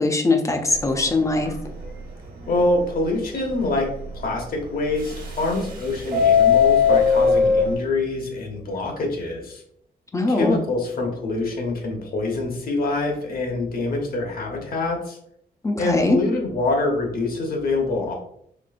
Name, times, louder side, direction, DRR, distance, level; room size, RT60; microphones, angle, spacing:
voice 1, 0.0-1.5 10.1-10.6 15.6-16.2, left 2 dB, 20° left, 4 dB, 0.5 m, -21 dB
Subway metro underground, 0.7-1.0 1.5-1.6 1.8-1.9 2.5-2.6 5.0-5.7 6.0-7.7, left 6 dB, 60° right, 1.1 m, -17 dB
voice 2, 2.5-3.9 4.1-9.6 10.3-15.2 15.8-18.1, left 2 dB, 60° left, 1 dB, 1.1 m, -25 dB
4.4 x 3.1 x 2.5 m, 0.69 s
wide cardioid pair, 130°, 17 cm